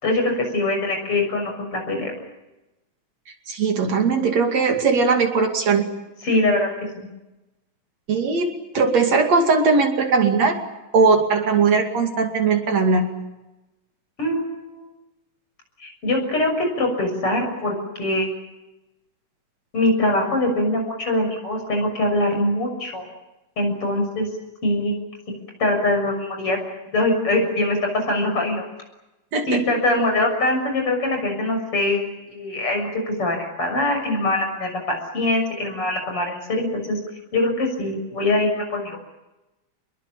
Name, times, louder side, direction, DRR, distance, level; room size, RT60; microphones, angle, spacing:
voice 1, 0.0-2.1 6.2-6.7 7.0-7.1 14.2-14.9 15.8-18.3 19.7-23.0 23.6-24.3 24.6-25.0 25.6-26.6 26.9-28.6 29.5-37.0 37.3-39.0, left 1 dB, 45° left, 3 dB, 7.5 m, -23 dB
voice 2, 3.5-5.9 8.1-10.6 10.9-13.1 29.3-29.6, right 4 dB, 60° right, 4 dB, 3.6 m, -19 dB
27.0 x 22.0 x 8.7 m, 1.0 s
omnidirectional pair, 3.5 m